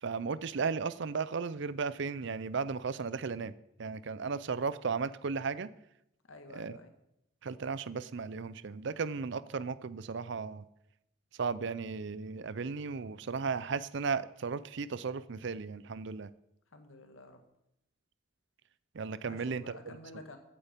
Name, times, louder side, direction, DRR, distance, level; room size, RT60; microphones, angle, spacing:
voice 1, 0.0-3.5 3.8-5.7 6.5-6.8 7.4-10.6 11.4-16.3 18.9-20.0, right 5 dB, 60° right, 17 dB, 0.5 m, -35 dB
voice 2, 6.3-6.9 16.7-17.4 19.2-20.4, left 2 dB, 80° left, 6 dB, 1.9 m, -50 dB
15.0 x 8.7 x 5.2 m, 0.83 s
head